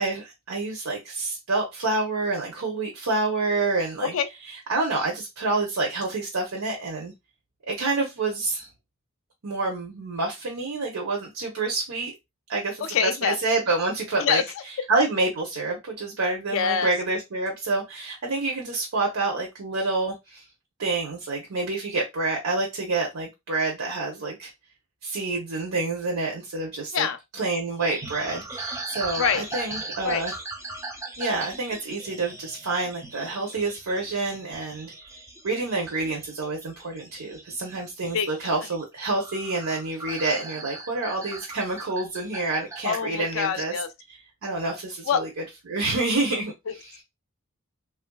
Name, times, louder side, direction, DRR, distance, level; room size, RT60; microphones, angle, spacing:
voice 1, 0.0-4.1 4.5-7.1 7.7-8.7 9.4-12.1 12.5-14.4 14.9-20.4 20.8-24.5 25.0-27.1 27.4-30.4 31.2-34.9 35.4-43.7 44.4-45.3 45.7-46.5 46.8-46.9, right 3 dB, 80° right, 0.7 m, -28 dB
voice 2, 12.8-13.4 14.2-14.4 16.5-16.9 26.9-27.2 29.2-29.4 30.0-30.2 38.1-38.3 42.8-43.9 45.1-45.2 46.7-46.8, left 7 dB, 65° left, 0.4 m, -25 dB
sound 1, 27.8-42.8, right 2 dB, 15° right, 0.4 m, -39 dB
3.2 x 2.5 x 2.2 m
head